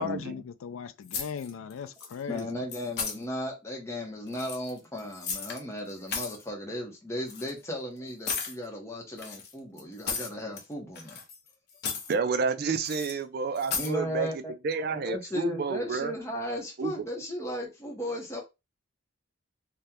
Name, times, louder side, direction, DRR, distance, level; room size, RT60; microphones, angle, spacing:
voice 1, 0.0-2.6, left 7 dB, 85° left, 0.4 m, -37 dB
sound 1, 1.1-1.7 2.0-2.4 2.7-3.2 4.3-5.6 5.9-6.4 7.3-7.5 8.3-8.6 9.2-10.6 11.0-11.5 11.7-12.1 12.8-13.1 13.6-13.9, left 5 dB, 50° left, 0.7 m, -35 dB
voice 2, 2.3-11.2 13.8-14.3 14.9-18.4, equal, 15° left, 0.6 m, -35 dB
voice 3, 12.1-14.3 14.6-16.1 16.8-16.9, right 4 dB, 50° right, 0.4 m, -29 dB
2.8 x 2.1 x 3.5 m
head